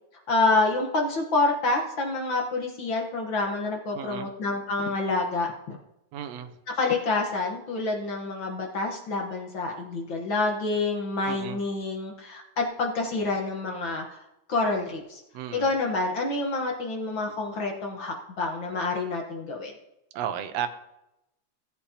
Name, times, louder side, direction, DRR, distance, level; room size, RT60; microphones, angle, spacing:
voice 1, 0.3-5.8 6.7-14.2 14.5-15.2 15.5-19.7, left 3 dB, 55° left, 1 dB, 1.5 m, -27 dB
voice 2, 3.9-4.3 6.1-6.5 11.3-11.6 15.3-15.7 20.1-20.7, right 9 dB, 70° right, 8 dB, 1.8 m, -33 dB
17.5 x 8.6 x 2.8 m, 0.88 s
omnidirectional pair, 3.5 m